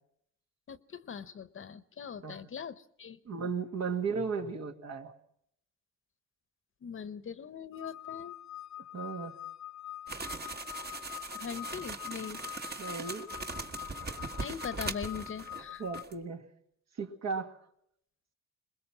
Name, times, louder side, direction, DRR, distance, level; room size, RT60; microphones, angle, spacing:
voice 1, 0.7-3.2 6.8-8.3 11.3-12.4 14.4-15.8, left 7 dB, 45° left, 15 dB, 0.9 m, -41 dB
voice 2, 3.3-5.2 8.9-9.4 12.8-13.3 15.8-16.4 17.0-17.5, right 5 dB, 60° right, 5 dB, 2.1 m, -35 dB
sound 1, 7.7-16.0, left 13 dB, 70° left, 0.8 m, -44 dB
sound 2, 10.1-15.7 15.9-16.1, right 3 dB, 30° right, 1.5 m, -40 dB
22.5 x 20.5 x 6.0 m, 0.71 s
cardioid pair, 90°, 30 cm